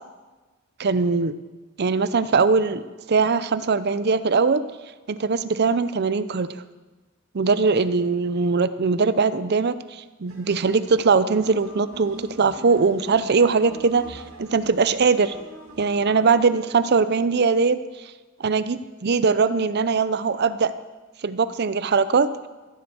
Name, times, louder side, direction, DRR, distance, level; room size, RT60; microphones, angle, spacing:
voice 1, 0.8-1.3 1.8-4.6 5.1-6.5 7.3-15.3 15.8-17.8 18.4-20.7 21.2-22.3, right 4 dB, 50° right, 14 dB, 0.6 m, -21 dB
sound 1, 10.3-16.3, right 1 dB, 90° right, 2.0 m, -43 dB
14.0 x 7.9 x 7.0 m, 1.2 s
head